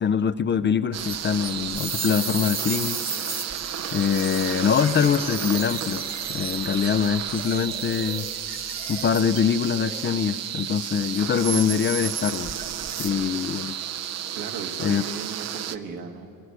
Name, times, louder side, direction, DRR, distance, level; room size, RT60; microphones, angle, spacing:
voice 1, 0.0-3.0 3.9-8.3 8.9-12.6 13.0-13.7 14.8-15.0, left 7 dB, 30° left, 12 dB, 0.4 m, -24 dB
sound 1, 0.9-15.8, right 10 dB, 45° right, 0.6 m, -33 dB
sound 2, 1.0-13.1, right 4 dB, 25° right, 1.4 m, -35 dB
voice 2, 12.9-13.2 14.3-16.4, right 5 dB, 75° right, 4 dB, 1.8 m, -37 dB
21.5 x 17.5 x 8.0 m, 2.9 s
cardioid pair, 135°, 37 cm